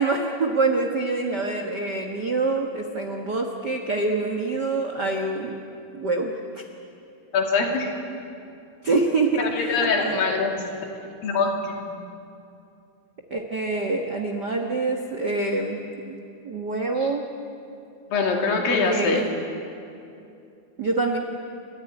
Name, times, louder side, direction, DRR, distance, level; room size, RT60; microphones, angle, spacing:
voice 1, 0.0-5.5 5.9-6.6 8.8-10.2 13.3-16.2 16.4-17.3 18.7-19.3 20.8-21.2, right 3 dB, 65° right, 2 dB, 1.0 m, -25 dB
voice 2, 7.3-7.9 9.4-10.5 11.2-11.8 17.0-17.1 18.1-19.2, left 4 dB, 65° left, 1 dB, 4.4 m, -23 dB
30.0 x 14.5 x 9.9 m, 2.6 s
omnidirectional pair, 4.4 m